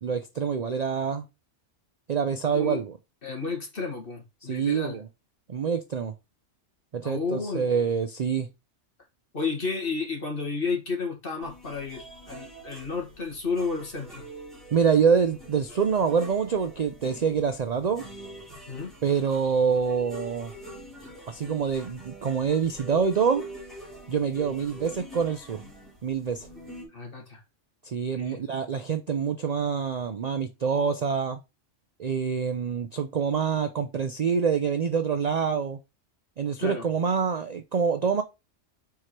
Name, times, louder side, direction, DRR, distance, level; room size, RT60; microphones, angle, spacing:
voice 1, 0.0-1.2 2.1-3.0 4.4-5.0 5.5-6.1 6.9-8.5 14.7-18.0 19.0-20.5 21.3-23.5 24.1-25.6 26.0-26.5 27.8-31.4 32.0-35.8 36.4-38.2, right 6 dB, 55° right, 0.4 m, -26 dB
voice 2, 3.2-5.0 7.0-7.7 9.3-14.2 18.7-18.9 26.9-27.4 28.1-28.4 36.6-36.9, left 4 dB, 45° left, 2.1 m, -32 dB
sound 1, 11.4-26.9, right 1 dB, ahead, 3.1 m, -45 dB
4.8 x 4.7 x 4.3 m
omnidirectional pair, 1.3 m